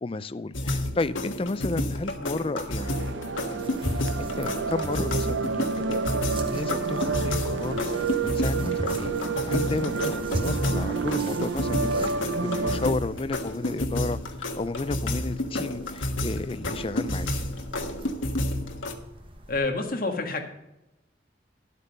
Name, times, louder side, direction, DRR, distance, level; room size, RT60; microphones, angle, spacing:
voice 1, 0.0-3.1 3.5-6.0 6.5-9.1 9.5-12.1 12.4-14.2 14.6-17.3, left 3 dB, 30° left, 13 dB, 0.4 m, -32 dB
sound 1, 0.5-19.0, left 1 dB, 90° left, 1.3 m, -31 dB
sound 2, 2.8-12.9, right 4 dB, 70° right, 0.7 m, -29 dB
sound 3, 3.6-19.6, equal, 25° right, 1.2 m, -41 dB
voice 2, 19.5-20.4, left 3 dB, 45° left, 2 dB, 1.7 m, -27 dB
11.0 x 8.3 x 5.3 m, 0.92 s
head